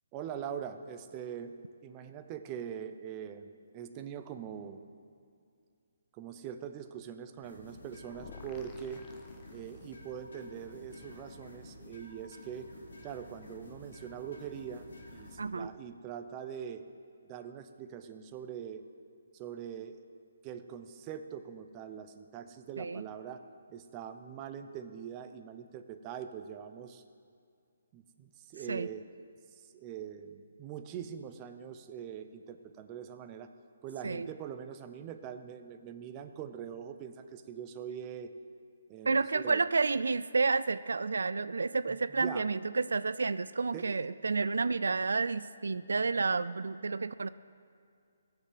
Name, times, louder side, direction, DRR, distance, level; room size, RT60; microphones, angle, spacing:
voice 1, 0.1-1.5 1.8-4.8 6.1-9.1 9.5-12.7 13.0-16.8 17.3-18.8 19.3-20.0 20.4-23.4 23.7-27.0 27.9-29.1 29.6-33.5 33.8-38.3 38.9-39.6 42.1-42.5 43.7-44.0, right 8 dB, 25° right, 8 dB, 0.7 m, -43 dB
sound 1, 7.4-15.4, left 2 dB, 75° left, 3.7 m, -51 dB
sound 2, 8.1-10.2, left 6 dB, 20° left, 0.8 m, -52 dB
voice 2, 15.4-15.7 22.8-23.0 28.7-28.9 34.0-34.3 39.0-47.3, right 4 dB, 85° right, 15 dB, 0.3 m, -30 dB
17.5 x 6.9 x 7.6 m, 2.3 s
hypercardioid pair, 155°, 0 cm